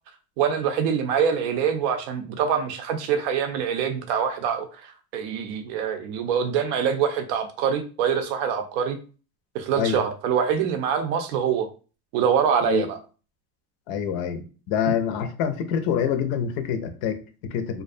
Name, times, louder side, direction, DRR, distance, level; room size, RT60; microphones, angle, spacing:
voice 1, 0.4-9.0 9.5-11.7 12.1-13.0, right 7 dB, 70° right, 7 dB, 0.6 m, -24 dB
voice 2, 13.9-17.8, left 8 dB, 55° left, 8 dB, 0.5 m, -26 dB
2.4 x 2.2 x 2.4 m, 0.35 s
supercardioid pair, 125°, 47 cm